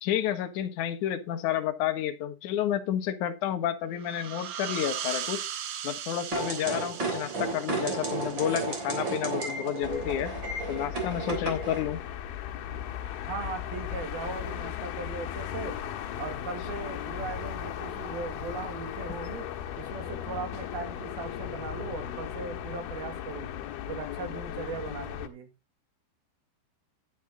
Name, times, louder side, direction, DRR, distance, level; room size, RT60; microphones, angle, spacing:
voice 1, 0.0-5.5 5.8-10.3 10.7-12.0, left 10 dB, 60° left, 2.3 m, -30 dB
sound 1, 4.0-9.3, right 9 dB, 90° right, 3.5 m, -38 dB
sound 2, 6.3-11.8, right 3 dB, 30° right, 3.7 m, -33 dB
sound 3, 9.8-25.3, left 10 dB, 80° left, 3.1 m, -37 dB
voice 2, 13.3-15.8 16.2-19.5 19.8-23.5 23.9-25.5, right 5 dB, 70° right, 4.1 m, -38 dB
11.0 x 9.2 x 3.7 m
omnidirectional pair, 4.6 m